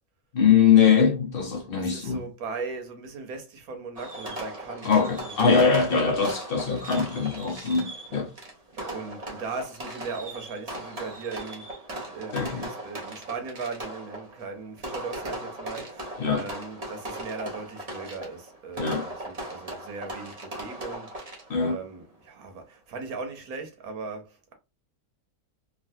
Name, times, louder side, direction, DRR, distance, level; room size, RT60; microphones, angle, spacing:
voice 1, 0.3-2.2 4.8-8.3 12.3-12.6 16.2-16.5 18.8-19.1 21.5-21.8, left 6 dB, 60° left, 0.6 m, -22 dB
voice 2, 1.7-5.8 8.1-8.3 8.8-11.7 12.1-24.5, right 4 dB, 90° right, 1.4 m, -38 dB
Fireworks, 4.0-21.7, right 1 dB, 30° right, 0.8 m, -38 dB
3.2 x 2.4 x 2.6 m
omnidirectional pair, 1.5 m